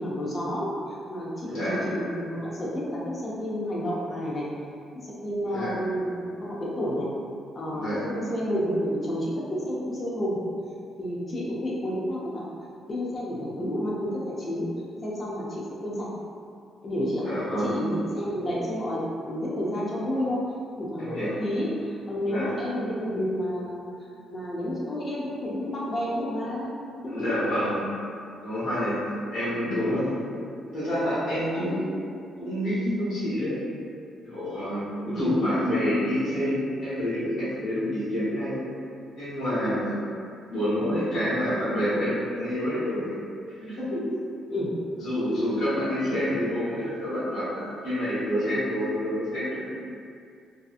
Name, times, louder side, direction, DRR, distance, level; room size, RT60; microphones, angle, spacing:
voice 1, 0.0-4.4 5.0-7.1 7.5-7.8 8.1-10.4 11.0-12.5 12.9-14.7 15.0-16.0 16.8-17.3 17.6-20.4 20.8-23.8 24.3-26.7 27.0-27.3 35.0-35.3 44.5-44.7, equal, 35° left, -6 dB, 0.7 m, -30 dB
voice 2, 1.5-1.8 5.5-5.7 7.7-8.0 17.2-17.8 21.0-21.3 22.2-22.5 27.1-27.9 28.4-29.0 29.3-30.4 30.7-31.8 32.4-33.6 34.2-38.6 39.2-40.0 40.5-43.1 43.6-44.0 45.0-49.7, equal, 65° left, -12 dB, 1.1 m, -28 dB
2.7 x 2.2 x 2.5 m, 2.4 s
cardioid pair, 90°, 0 cm